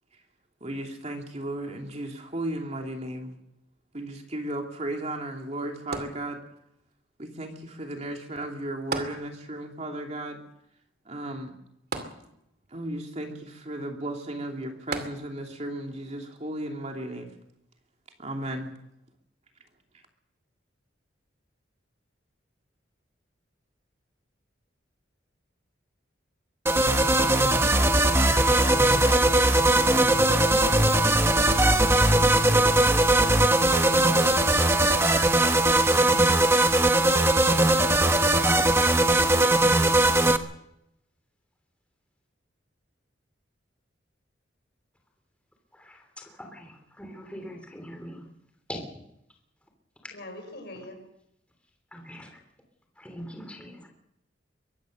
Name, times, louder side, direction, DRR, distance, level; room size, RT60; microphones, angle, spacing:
voice 1, 0.6-3.4 3.9-6.4 7.2-10.4 11.0-11.5 12.7-17.3 18.2-18.7, right 1 dB, 35° right, 2 dB, 2.8 m, -35 dB
sound 1, 5.9-6.8 8.9-9.8 10.1-10.2 11.9-12.8 14.9-15.6 16.3-16.4, right 3 dB, 55° right, 2.5 m, -36 dB
sound 2, 26.7-40.4, right 1 dB, 15° right, 1.2 m, -20 dB
voice 2, 27.9-30.2 30.5-30.7 50.1-51.0, left 2 dB, 60° left, 5 dB, 6.2 m, -41 dB
voice 3, 45.7-48.2 48.7-48.8 51.9-52.4 53.0-53.9, equal, 5° left, 3 dB, 3.1 m, -42 dB
23.0 x 17.5 x 6.6 m, 0.79 s
head